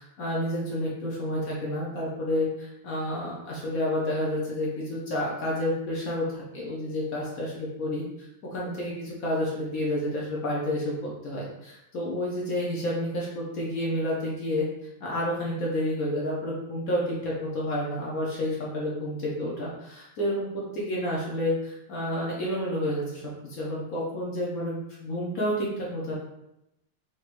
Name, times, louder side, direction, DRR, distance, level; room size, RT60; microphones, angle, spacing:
voice 1, 0.0-8.0 8.5-14.6 15.0-23.2 23.5-26.1, left 1 dB, 60° left, -5 dB, 0.9 m, -30 dB
4.5 x 3.0 x 2.5 m, 0.85 s
omnidirectional pair, 2.4 m